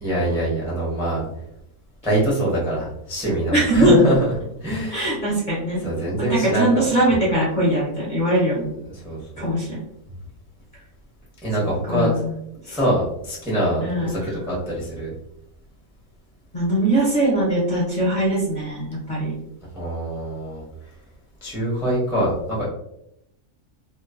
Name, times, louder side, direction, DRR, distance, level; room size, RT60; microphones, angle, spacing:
voice 1, 0.0-1.2 2.0-4.3 4.6-5.1 5.8-6.7 8.9-9.5 11.4-12.2 12.7-15.1 19.7-20.6 21.4-22.7, right 1 dB, 5° right, -6 dB, 0.5 m, -24 dB
voice 2, 3.5-4.0 4.9-5.8 6.2-8.7 9.4-9.8 11.9-12.3 12.6-12.8 13.8-14.3 16.5-19.3, right 1 dB, 45° left, -7 dB, 0.6 m, -21 dB
2.9 x 2.1 x 2.3 m, 0.79 s
omnidirectional pair, 1.6 m